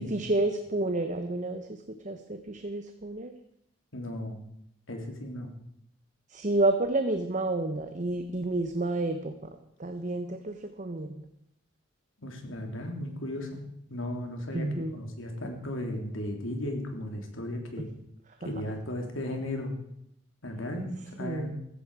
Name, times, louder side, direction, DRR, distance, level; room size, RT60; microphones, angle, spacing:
voice 1, 0.0-1.8 2.0-3.3 6.3-9.3 9.8-11.2 14.5-15.0 18.4-18.5 21.2-21.6, right 2 dB, 40° right, 7 dB, 1.0 m, -30 dB
voice 2, 3.9-4.4 4.9-5.5 12.2-13.6 13.9-17.9 18.4-19.7 20.4-21.5, left 1 dB, 85° left, 3 dB, 3.3 m, -35 dB
16.0 x 14.5 x 4.9 m, 0.75 s
head